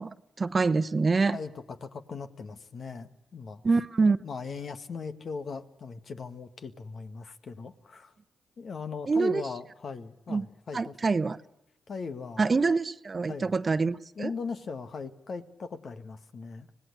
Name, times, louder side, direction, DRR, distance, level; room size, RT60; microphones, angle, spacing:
voice 1, 0.0-1.4 3.6-4.2 9.1-9.4 10.3-10.4 10.7-11.4 12.4-14.3, right 4 dB, 40° right, 15 dB, 1.0 m, -25 dB
voice 2, 1.3-3.6 4.2-8.1 8.6-11.0 11.9-12.5 13.3-13.5 14.2-16.7, left 5 dB, 55° left, 9 dB, 1.8 m, -39 dB
25.5 x 19.0 x 8.0 m, 0.83 s
hypercardioid pair, 40°, 0 cm